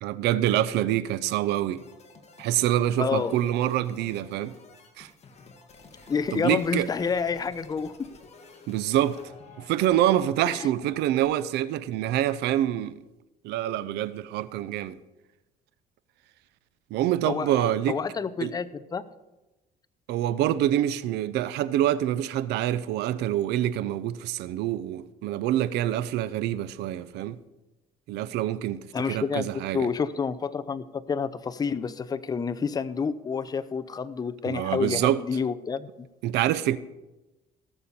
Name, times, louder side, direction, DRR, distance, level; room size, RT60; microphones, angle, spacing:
voice 1, 0.0-1.8 2.4-4.6 5.0-5.1 6.3-6.9 8.7-9.2 9.6-13.0 13.4-15.0 16.9-18.0 18.4-18.5 20.1-27.4 28.1-29.9 34.4-35.2 36.2-36.8, right 12 dB, 85° right, 0.6 m, -26 dB
sound 1, 1.8-11.2, left 4 dB, 40° left, 1.6 m, -50 dB
voice 2, 3.0-3.3 6.1-8.1 10.5-10.6 17.2-18.7 18.9-19.0 28.9-36.1, left 5 dB, 25° left, 0.5 m, -29 dB
17.5 x 6.9 x 4.3 m
cardioid pair, 110°, 17 cm